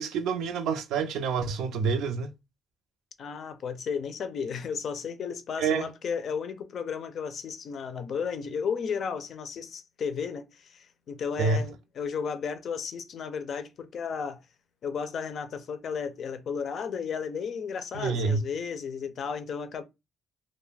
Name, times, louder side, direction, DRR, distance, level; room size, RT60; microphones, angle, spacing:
voice 1, 0.0-2.3 5.6-5.9 11.4-11.6 17.9-18.4, right 5 dB, 85° right, 0.4 m, -27 dB
voice 2, 3.2-14.4 14.8-19.8, left 6 dB, 60° left, 0.4 m, -34 dB
2.3 x 2.1 x 3.2 m
cardioid pair, 90°, 0 cm